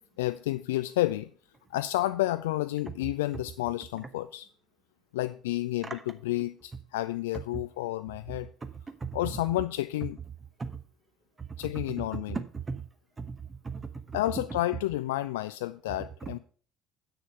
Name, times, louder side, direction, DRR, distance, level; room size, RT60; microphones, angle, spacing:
voice 1, 0.2-1.3 1.7-4.5 5.1-8.5 9.1-10.2 11.6-12.4 14.1-16.4, left 16 dB, 70° left, 12 dB, 0.3 m, -30 dB
voice 2, 8.4-9.3 10.6-10.8 11.4-11.7 12.1-12.8 13.2-14.2 16.2-16.4, right 5 dB, 25° right, 9 dB, 1.0 m, -38 dB
8.1 x 6.5 x 5.5 m, 0.43 s
figure-of-eight pair, 55°, 0 cm